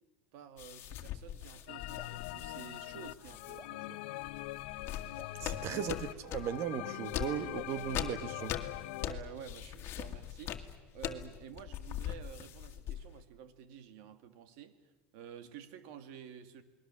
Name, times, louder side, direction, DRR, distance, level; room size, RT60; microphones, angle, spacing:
voice 1, 0.3-4.0 5.7-5.9 9.0-10.5 10.9-16.6, right 8 dB, 70° right, 2.2 m, -50 dB
sound 1, 0.6-3.6 4.2-6.6 7.0-13.2, left 11 dB, 45° left, 2.0 m, -41 dB
sound 2, 1.7-9.1, left 19 dB, 80° left, 0.7 m, -43 dB
Drip, 1.9-2.2 3.6-3.8 5.2-5.4 6.8-7.0 8.4-8.6, right 2 dB, 15° right, 2.5 m, -54 dB
voice 2, 5.4-6.0 6.3-8.6, right 9 dB, 50° right, 1.6 m, -37 dB
29.0 x 20.5 x 7.4 m
supercardioid pair, 135°, 6 cm